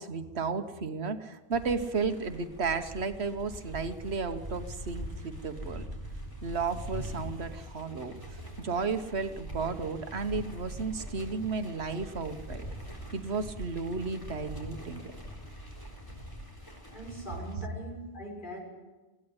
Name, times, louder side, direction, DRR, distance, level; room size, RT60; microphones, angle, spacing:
voice 1, 0.0-5.8 6.4-12.7 13.1-15.1, right 4 dB, 90° right, 9 dB, 1.5 m, -33 dB
sound 1, 1.5-17.5, equal, 20° left, 4.0 m, -43 dB
voice 2, 16.9-18.6, right 1 dB, 50° left, -1 dB, 6.8 m, -41 dB
21.0 x 15.5 x 9.8 m, 1.2 s
omnidirectional pair, 1.1 m